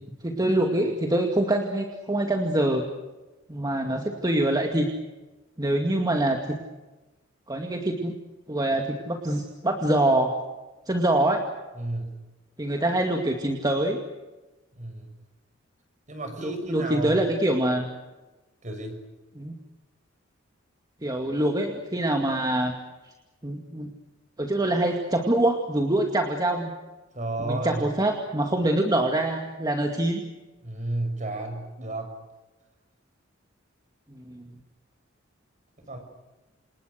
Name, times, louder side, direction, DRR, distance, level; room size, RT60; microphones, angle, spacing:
voice 1, 0.2-2.8 3.5-4.9 5.6-6.6 7.5-8.1 8.5-10.3 10.9-11.4 12.6-14.0 16.4-17.9 19.4-19.6 21.0-22.7 23.4-23.9 24.4-26.7 27.4-30.2 34.2-34.5, right 1 dB, 20° right, 3 dB, 2.3 m, -25 dB
voice 2, 11.7-12.2 14.7-15.1 16.1-17.2 18.6-19.0 27.1-27.9 30.6-32.2 35.9-36.0, right 2 dB, 40° right, 5 dB, 6.7 m, -32 dB
29.0 x 28.0 x 6.6 m, 1.1 s
head